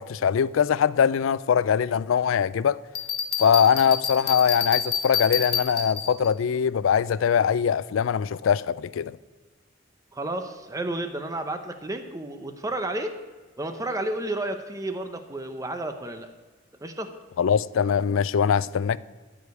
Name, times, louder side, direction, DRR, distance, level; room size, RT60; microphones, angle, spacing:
voice 1, 0.0-2.8 3.4-9.1 17.4-19.0, left 7 dB, 80° left, 0.4 m, -22 dB
Bell, 2.9-6.3, left 7 dB, 55° left, 1.2 m, -28 dB
voice 2, 10.1-13.2 13.6-16.3 16.8-17.1, right 1 dB, 15° right, 0.7 m, -31 dB
14.0 x 5.0 x 8.2 m
head